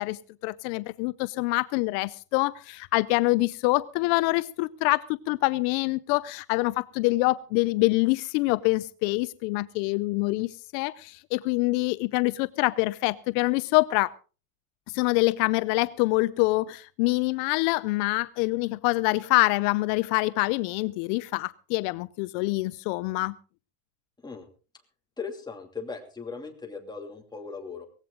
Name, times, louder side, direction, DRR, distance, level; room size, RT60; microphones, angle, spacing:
voice 1, 0.0-14.1 14.9-23.4, left 22 dB, 70° left, 16 dB, 0.7 m, -25 dB
voice 2, 25.2-27.8, left 5 dB, 10° left, 2 dB, 2.6 m, -38 dB
18.5 x 15.5 x 3.8 m, 0.37 s
cardioid pair, 150°, 48 cm